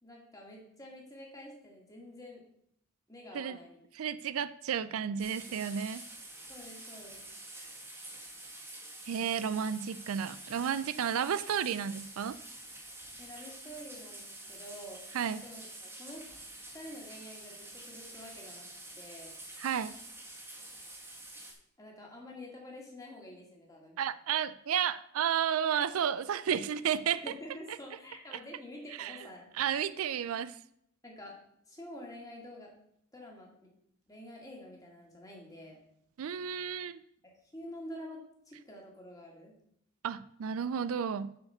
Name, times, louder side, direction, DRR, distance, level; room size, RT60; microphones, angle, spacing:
voice 1, 0.0-2.4 3.1-3.8 6.5-7.2 13.2-15.0 15.4-16.2 16.7-18.7 19.0-19.3 21.8-24.0 27.1-29.8 31.0-31.3 31.7-32.7 33.1-33.7 34.1-35.8 37.2-39.5, left 1 dB, 15° left, -1 dB, 2.1 m, -48 dB
voice 2, 4.0-6.0 9.1-12.3 15.1-15.4 19.6-19.9 24.0-27.2 29.0-29.2 29.5-30.5 36.2-37.0 40.0-41.3, right 8 dB, 75° right, 14 dB, 0.4 m, -32 dB
sound 1, 5.2-21.5, right 1 dB, 10° right, 1.8 m, -48 dB
7.8 x 4.8 x 6.6 m, 0.72 s
head